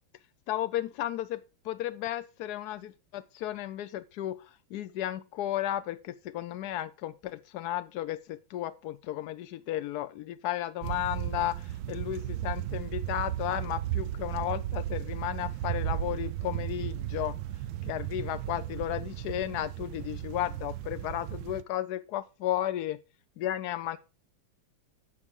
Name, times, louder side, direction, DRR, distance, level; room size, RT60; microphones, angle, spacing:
voice 1, 0.5-17.4 17.8-23.0 23.4-24.0, left 13 dB, 70° left, 0.9 m, -34 dB
sound 1, 10.8-21.6, right 13 dB, 90° right, 1.4 m, -35 dB
11.0 x 7.2 x 3.7 m
omnidirectional pair, 2.2 m